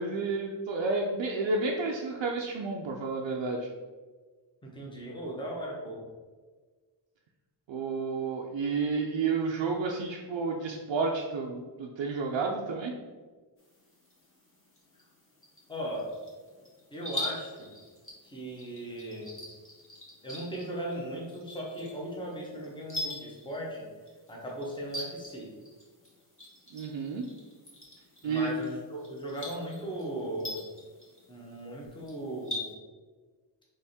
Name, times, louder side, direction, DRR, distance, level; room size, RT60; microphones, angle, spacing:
voice 1, 0.0-3.7 7.7-12.9 26.7-27.3 28.2-28.5, right 4 dB, 70° right, 0 dB, 0.6 m, -31 dB
voice 2, 4.6-6.0 15.7-16.1 16.9-17.7 18.2-19.3 20.2-23.8 24.3-25.5 28.2-30.6 31.3-32.7, right 1 dB, 10° left, -3 dB, 1.1 m, -37 dB
sound 1, 13.6-32.7, left 1 dB, 25° left, 1.3 m, -44 dB
3.5 x 3.3 x 4.2 m, 1.4 s
wide cardioid pair, 95°, 47 cm